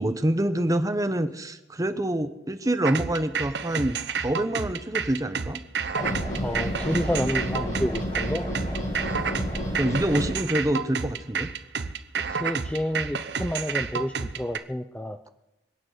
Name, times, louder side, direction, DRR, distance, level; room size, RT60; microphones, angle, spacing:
voice 1, 0.0-5.6 9.8-11.5, right 1 dB, 20° right, 10 dB, 0.9 m, -26 dB
sound 1, 2.8-14.6, right 6 dB, 70° right, 0.8 m, -30 dB
sound 2, 5.9-10.3, equal, 40° left, 7.3 m, -30 dB
voice 2, 6.4-8.5 12.3-15.3, equal, 5° left, 9 dB, 0.5 m, -29 dB
25.0 x 8.9 x 6.6 m, 0.92 s
head